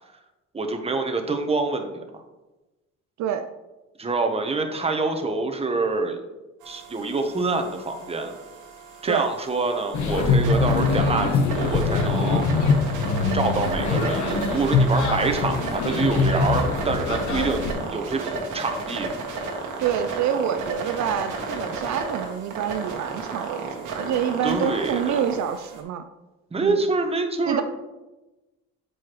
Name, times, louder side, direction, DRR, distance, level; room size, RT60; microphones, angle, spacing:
voice 1, 0.5-2.2 4.0-6.2 6.7-8.3 9.0-12.5 13.3-17.7 17.9-19.1 24.4-25.2 26.5-27.6, right 3 dB, 20° right, 5 dB, 0.8 m, -26 dB
sound 1, 6.6-25.8, right 3 dB, 85° right, 1.2 m, -33 dB
sound 2, 9.9-17.7, left 4 dB, 70° left, 1.0 m, -23 dB
voice 2, 19.8-26.0 26.6-26.8 27.5-27.6, right 9 dB, 70° right, 8 dB, 0.5 m, -27 dB
7.7 x 4.7 x 3.0 m, 1.1 s
cardioid pair, 90°, 30 cm